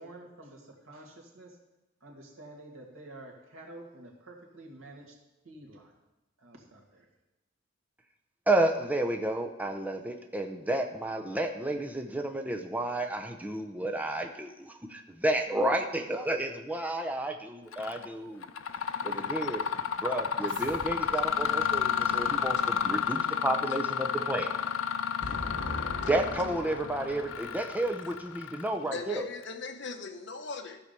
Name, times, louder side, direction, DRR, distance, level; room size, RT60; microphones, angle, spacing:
voice 1, 0.0-1.6 2.0-5.2 5.4-5.9 6.4-7.1, right 2 dB, 85° right, 0 dB, 2.2 m, -49 dB
voice 2, 8.5-18.5 19.0-19.6 20.0-24.7 26.1-29.3, right 1 dB, 10° right, 3 dB, 0.7 m, -31 dB
Mechanisms, 17.7-18.1 18.4-29.0, left 7 dB, 80° left, 0.5 m, -31 dB
voice 3, 19.4-19.9 20.4-20.5 21.4-21.5 22.2-22.4 25.2-27.7 28.1-28.2 28.9-30.8, left 3 dB, 60° left, 6 dB, 1.0 m, -40 dB
sound 1, 20.4-23.2, right 1 dB, 60° right, 2.1 m, -51 dB
14.0 x 5.0 x 6.8 m, 0.99 s
head